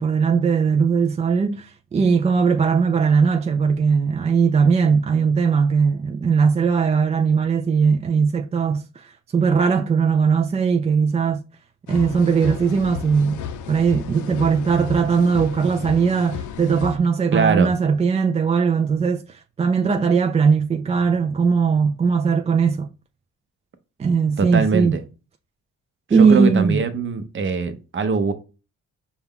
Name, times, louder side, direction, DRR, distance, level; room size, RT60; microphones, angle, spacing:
voice 1, 0.0-11.4 11.9-13.4 13.7-22.9 24.0-25.0 26.1-26.8, right 5 dB, 20° right, 0.3 m, -19 dB
sound 1, 11.9-17.0, left 7 dB, 75° left, 0.5 m, -33 dB
voice 2, 17.3-17.7 24.4-25.0 26.1-28.3, right 5 dB, 40° right, 0.8 m, -22 dB
5.3 x 2.4 x 3.6 m
cardioid pair, 90°, 30 cm